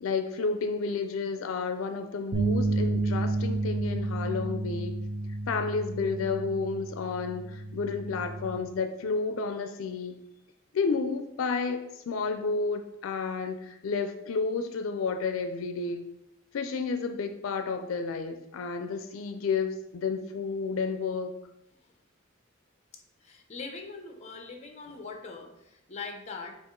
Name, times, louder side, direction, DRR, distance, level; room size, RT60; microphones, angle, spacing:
voice 1, 0.0-4.9 5.5-10.2 10.7-16.1 16.5-21.3, left 4 dB, 80° left, 7 dB, 0.4 m, -31 dB
sound 1, 2.3-8.6, right 2 dB, 85° right, 0.6 m, -31 dB
voice 2, 23.2-26.6, left 4 dB, 35° left, 4 dB, 0.6 m, -41 dB
5.7 x 2.5 x 3.7 m, 0.83 s
head